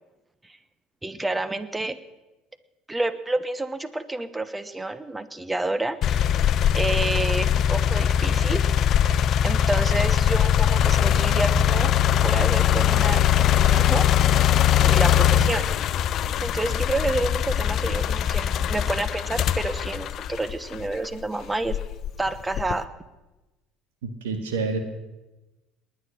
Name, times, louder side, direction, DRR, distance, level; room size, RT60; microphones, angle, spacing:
voice 1, 1.0-2.0 2.9-6.4 6.7-8.6 9.4-11.9 12.2-14.1 14.8-15.7 16.4-21.8 22.2-22.9, right 2 dB, 15° right, 15 dB, 1.1 m, -29 dB
sound 1, 6.0-21.1 21.6-22.9, left 10 dB, 50° left, 0.6 m, -21 dB
voice 2, 24.0-24.8, right 4 dB, 75° right, 7 dB, 1.7 m, -28 dB
20.0 x 9.6 x 6.5 m, 1.1 s
hypercardioid pair, 65°, 0 cm